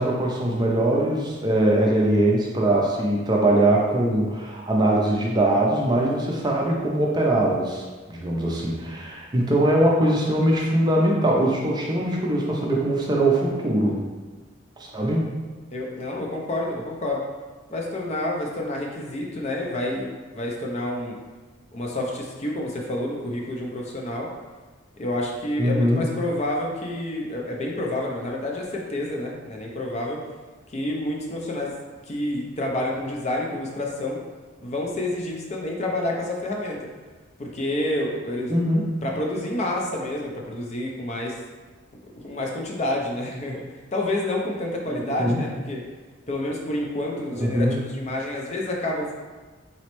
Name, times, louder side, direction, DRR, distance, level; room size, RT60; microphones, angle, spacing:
voice 1, 0.0-14.0 14.8-15.3 25.6-26.1 38.5-38.9 44.9-45.4 47.4-47.8, right 1 dB, 20° right, -2 dB, 0.5 m, -22 dB
voice 2, 15.7-17.2 17.7-21.2 21.7-24.3 25.0-30.2 30.7-31.7 32.1-34.2 34.6-36.9 37.4-38.5 39.0-41.4 42.1-43.6 43.9-45.8 46.3-49.1, left 1 dB, 30° left, -1 dB, 0.5 m, -28 dB
4.1 x 3.1 x 3.0 m, 1.3 s
head